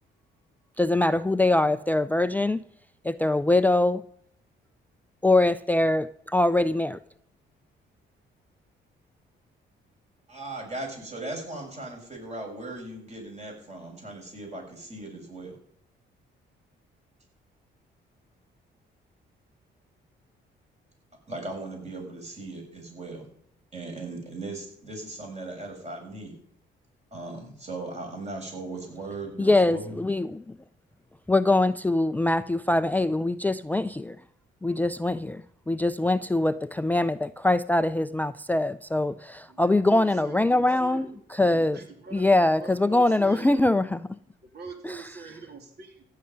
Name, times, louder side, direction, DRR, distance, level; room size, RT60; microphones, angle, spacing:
voice 1, 0.8-2.6 3.0-4.0 5.2-7.0 29.4-30.4 31.3-34.2 34.6-41.8 42.1-44.0 44.8-45.0, left 2 dB, 10° left, 15 dB, 0.4 m, -23 dB
voice 2, 10.3-15.6 21.3-23.2 23.7-26.3 27.1-30.0, right 2 dB, 35° right, 1 dB, 6.7 m, -38 dB
voice 3, 39.5-41.1 41.7-43.6 44.4-46.0, right 4 dB, 55° right, 3 dB, 3.1 m, -43 dB
15.0 x 6.7 x 9.6 m, 0.67 s
cardioid pair, 90°, 20 cm